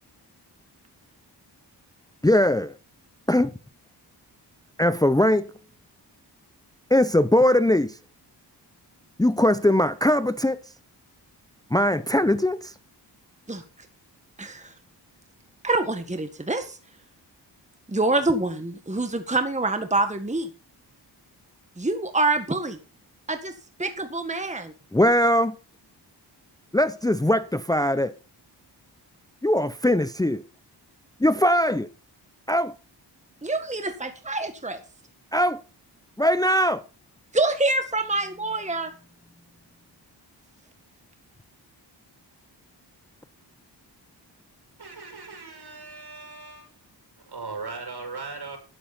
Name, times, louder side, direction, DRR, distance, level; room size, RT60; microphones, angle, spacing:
voice 1, 2.2-2.7 3.3-3.5 4.8-5.5 6.9-8.0 9.2-10.6 11.7-12.7 24.9-25.6 26.7-28.1 29.4-30.4 31.2-31.9 32.5-32.7 35.3-35.6 36.2-36.8, left 1 dB, 10° left, 0.8 m, -20 dB
voice 2, 14.4-14.7 15.6-16.8 17.9-20.5 21.8-22.8 23.3-23.5 23.8-24.7 33.4-34.8 37.3-38.9, right 2 dB, 15° right, 1.8 m, -26 dB
voice 3, 44.8-46.8 47.3-48.6, right 4 dB, 60° right, 7.1 m, -38 dB
14.0 x 12.0 x 4.3 m
cardioid pair, 70°, 43 cm